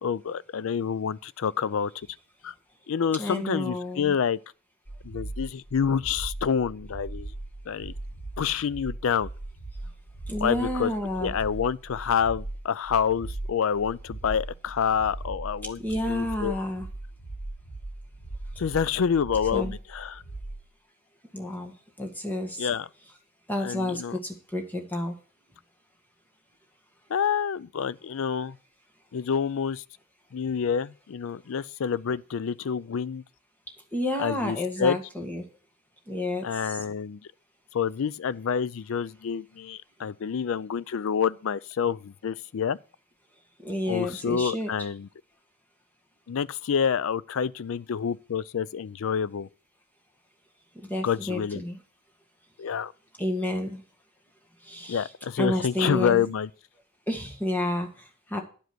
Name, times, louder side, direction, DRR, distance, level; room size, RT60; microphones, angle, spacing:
voice 1, 0.0-1.9 2.4-2.5 2.9-4.4 5.0-7.3 7.7-7.9 8.4-9.3 10.4-10.9 11.2-15.8 16.1-16.5 18.6-20.2 22.6-22.9 23.6-24.2 27.1-28.6 29.1-29.8 30.3-33.2 34.2-35.0 36.4-37.2 37.7-42.8 43.9-45.1 46.3-49.5 51.0-51.6 52.6-52.9 54.9-56.5, left 7 dB, 65° left, 0.4 m, -28 dB
voice 2, 3.2-4.1 10.3-11.3 15.8-16.9 19.5-19.7 21.3-22.7 23.5-25.1 33.9-35.4 36.1-36.8 43.6-44.7 50.7-51.8 53.2-53.8 54.6-55.1 55.4-56.2 57.1-58.4, left 1 dB, 10° left, 1.7 m, -30 dB
sound 1, 4.9-20.7, right 2 dB, 85° left, 6.2 m, -39 dB
10.5 x 5.1 x 7.9 m
head